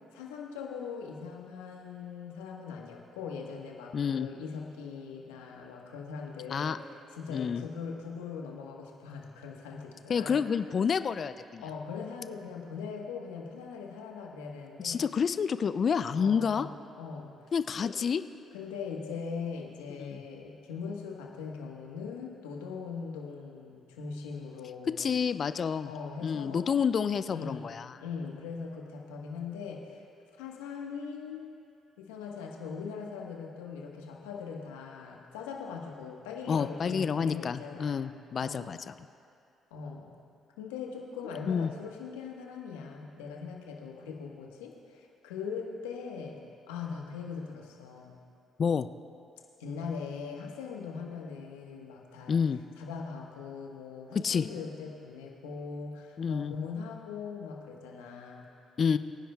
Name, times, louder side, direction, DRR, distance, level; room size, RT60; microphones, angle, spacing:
voice 1, 0.1-6.8 7.1-10.4 11.6-15.1 16.1-17.3 17.8-17.9 18.5-25.0 25.9-26.7 27.3-27.7 28.0-30.0 30.4-31.5 32.0-38.8 39.7-40.1 40.6-46.4 46.7-48.2 49.6-52.3 52.8-58.4 58.9-59.0, left 5 dB, 90° left, 0 dB, 1.2 m, -40 dB
voice 2, 3.9-4.3 6.5-6.8 7.3-7.6 10.1-11.6 14.8-16.7 17.5-18.2 20.0-20.2 25.0-25.9 26.2-28.0 36.5-38.9 41.5-41.7 48.6-48.9 52.3-52.6 54.1-54.5 56.2-56.5 58.8-59.0, left 6 dB, 50° left, 13 dB, 0.4 m, -29 dB
23.5 x 10.0 x 2.3 m, 2.5 s
hypercardioid pair, 55°, 0 cm